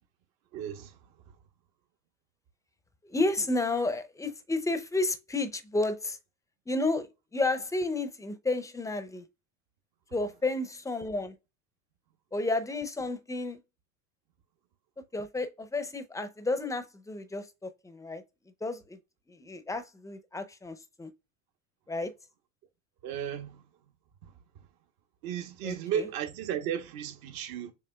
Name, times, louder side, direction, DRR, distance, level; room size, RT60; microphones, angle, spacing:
voice 1, 0.5-1.0 23.0-23.6 24.2-24.3 25.2-27.7, right 9 dB, 60° right, 1.2 m, -34 dB
voice 2, 3.0-6.2 6.7-7.1 7.3-9.2 10.1-11.3 12.3-13.6 15.1-18.2 18.6-19.0 19.3-21.1 21.9-22.1 25.6-26.0, left 2 dB, 10° left, 0.6 m, -31 dB
6.9 x 3.0 x 2.3 m
hypercardioid pair, 90°, 41 cm